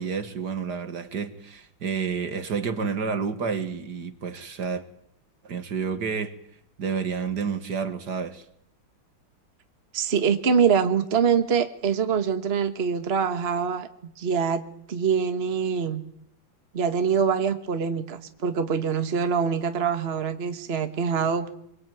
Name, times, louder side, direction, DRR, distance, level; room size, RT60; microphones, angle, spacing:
voice 1, 0.0-4.8 5.4-6.3 6.8-8.4, right 5 dB, 60° right, 2.2 m, -30 dB
voice 2, 9.9-14.6 14.9-16.0 16.7-21.5, right 6 dB, 35° right, 1.6 m, -24 dB
25.5 x 23.0 x 9.2 m
omnidirectional pair, 2.1 m